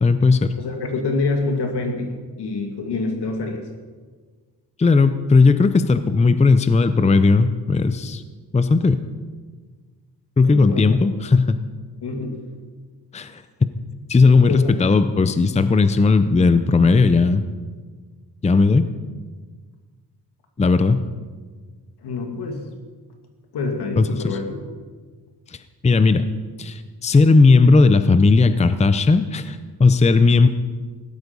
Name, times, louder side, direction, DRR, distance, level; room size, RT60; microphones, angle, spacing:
voice 1, 0.0-0.5 4.8-8.2 8.5-9.0 10.4-11.6 13.1-13.4 14.1-17.4 18.4-18.8 20.6-21.0 24.0-24.4 25.8-26.3 26.6-30.5, left 4 dB, 15° left, 11 dB, 0.6 m, -16 dB
voice 2, 0.6-2.1 2.4-3.6 10.4-10.8 12.0-12.4 14.5-14.8 22.0-22.6 23.5-24.6, left 3 dB, 80° left, 3 dB, 2.6 m, -26 dB
16.5 x 12.5 x 5.3 m, 1.5 s
cardioid pair, 105°, 40 cm